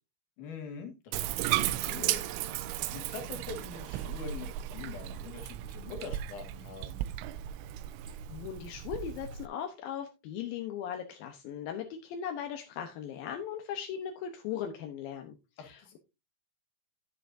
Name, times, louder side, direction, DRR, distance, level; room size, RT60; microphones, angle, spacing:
voice 1, 0.4-2.2 2.9-7.0 15.6-16.0, left 4 dB, 55° left, 4 dB, 2.9 m, -44 dB
Bathtub (filling or washing), 1.1-9.5, right 12 dB, 90° right, 3.0 m, -35 dB
voice 2, 8.3-16.0, left 9 dB, 75° left, 4 dB, 2.2 m, -38 dB
10.5 x 9.1 x 2.6 m, 0.26 s
omnidirectional pair, 5.3 m